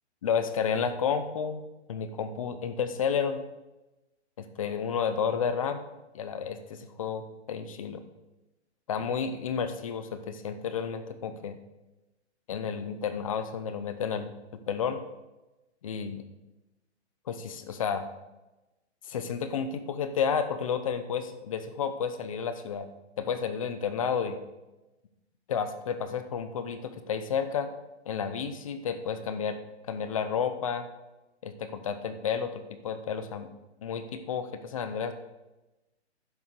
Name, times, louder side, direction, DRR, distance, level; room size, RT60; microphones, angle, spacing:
voice 1, 0.2-1.6 1.9-3.4 4.4-5.8 6.1-8.0 8.9-11.6 12.5-15.0 15.8-16.2 17.3-18.1 19.1-22.9 23.2-24.4 25.5-27.7 28.1-29.6 29.9-30.8 31.4-33.5 33.8-35.1, left 7 dB, 30° left, 10 dB, 0.8 m, -31 dB
10.5 x 7.0 x 6.6 m, 1.0 s
hypercardioid pair, 170°, 34 cm